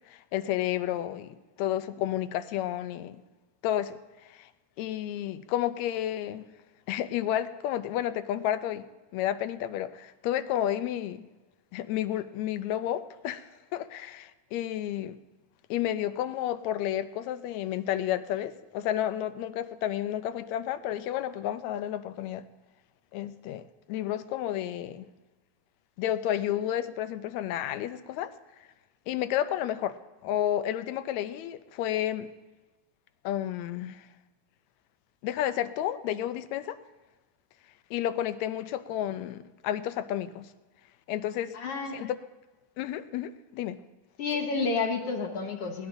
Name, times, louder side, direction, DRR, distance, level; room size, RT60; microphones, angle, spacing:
voice 1, 0.1-3.2 3.6-4.0 4.3-4.5 4.8-6.5 6.9-8.8 9.1-11.3 11.7-15.2 15.7-22.4 23.1-25.1 26.0-28.3 29.1-30.0 30.2-32.3 33.2-34.1 35.2-36.8 37.9-40.5 41.1-41.6 41.9-42.2 42.8-43.8, left 11 dB, 80° left, 12 dB, 1.7 m, -31 dB
voice 2, 41.5-42.0 44.2-45.9, left 4 dB, 60° left, 3 dB, 2.0 m, -30 dB
22.5 x 18.0 x 2.6 m, 1.2 s
omnidirectional pair, 3.5 m